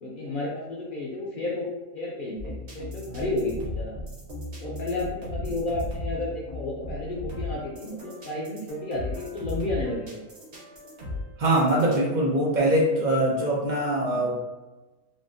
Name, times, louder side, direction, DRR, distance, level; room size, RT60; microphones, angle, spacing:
voice 1, 0.0-1.7 1.9-3.9 4.6-10.2, left 2 dB, 60° left, -4 dB, 0.5 m, -32 dB
sound 1, 2.4-12.0, left 2 dB, 55° right, 1.2 m, -36 dB
voice 2, 11.4-14.4, right 1 dB, 75° right, -3 dB, 0.4 m, -23 dB
3.4 x 2.4 x 2.6 m, 1.1 s
omnidirectional pair, 1.5 m